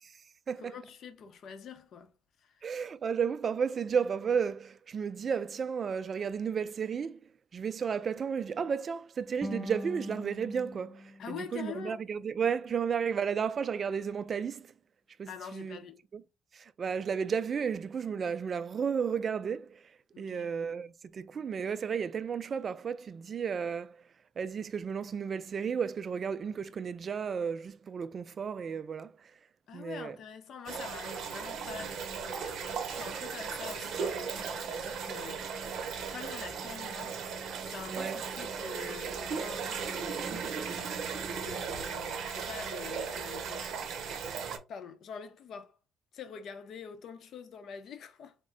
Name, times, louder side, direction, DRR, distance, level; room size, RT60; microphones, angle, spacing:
voice 1, 0.6-2.1 2.4-2.8 11.2-12.0 15.3-16.0 20.1-20.5 29.7-35.5 36.1-37.2 37.7-40.5 41.3-44.0 44.7-45.7 46.1-48.3, left 7 dB, 65° left, 0.6 m, -45 dB
voice 2, 2.6-7.2 7.5-14.7 15.2-15.8 16.1-16.2 16.5-19.8 20.2-24.0 24.4-29.1 29.7-30.2 37.9-38.2, right 6 dB, 45° right, 0.3 m, -33 dB
sound 1, 9.4-12.5, left 1 dB, 5° left, 0.6 m, -43 dB
sound 2, 30.7-44.6, right 6 dB, 70° right, 0.7 m, -37 dB
3.6 x 2.1 x 3.7 m
cardioid pair, 90°, 0 cm